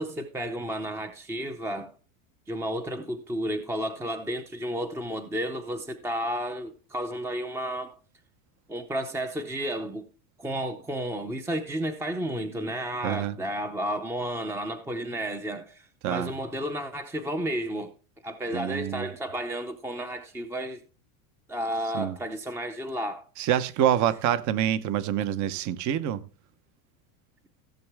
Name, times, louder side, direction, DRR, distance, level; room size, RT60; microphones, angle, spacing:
voice 1, 0.0-1.9 2.5-7.9 8.7-10.1 10.4-17.9 18.2-20.8 21.5-23.3, equal, 5° right, 0.6 m, -32 dB
voice 2, 13.0-13.4 16.0-16.3 18.5-19.1 21.9-22.2 23.4-26.2, right 10 dB, 45° right, 0.9 m, -26 dB
16.0 x 7.3 x 3.4 m
supercardioid pair, 135°, 42 cm